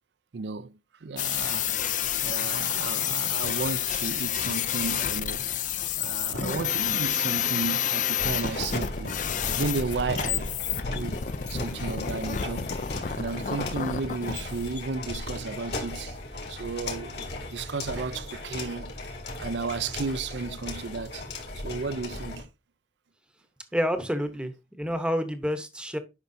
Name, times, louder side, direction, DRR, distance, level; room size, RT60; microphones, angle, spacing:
voice 1, 0.3-1.7 2.2-5.7 5.9-9.2 9.5-11.2 11.5-12.7 13.1-16.2 16.5-19.1 19.4-21.2 21.6-22.5, right 4 dB, 75° right, 0.5 m, -34 dB
sound 1, 1.2-14.8, left 9 dB, 45° left, 0.5 m, -29 dB
sound 2, 8.2-22.4, left 2 dB, 65° left, 2.5 m, -37 dB
voice 2, 23.7-26.0, equal, 5° right, 0.9 m, -29 dB
9.6 x 5.7 x 2.7 m
head